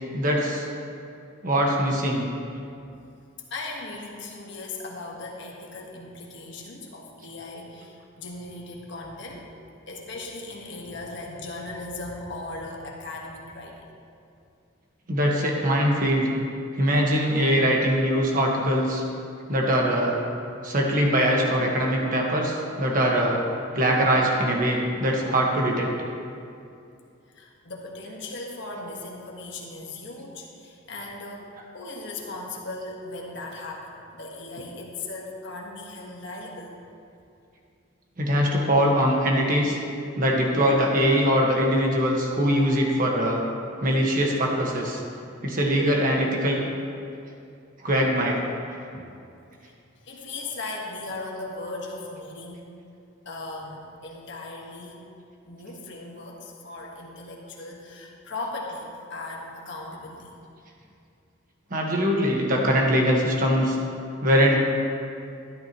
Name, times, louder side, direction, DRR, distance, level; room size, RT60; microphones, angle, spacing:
voice 1, 0.1-0.6 1.4-2.2 15.1-16.3 16.8-19.0 19.5-20.2 20.6-23.4 23.7-25.9 38.2-39.8 40.2-43.4 43.8-45.0 45.4-46.6 47.8-48.4 61.7-63.8 64.2-64.6, equal, 40° right, -1 dB, 1.4 m, -22 dB
voice 2, 3.5-9.5 9.9-13.8 27.3-36.8 49.6-49.7 50.0-52.6 53.2-55.0 55.4-60.4, left 2 dB, 60° left, -1 dB, 1.4 m, -38 dB
13.0 x 11.5 x 3.0 m, 2.6 s
head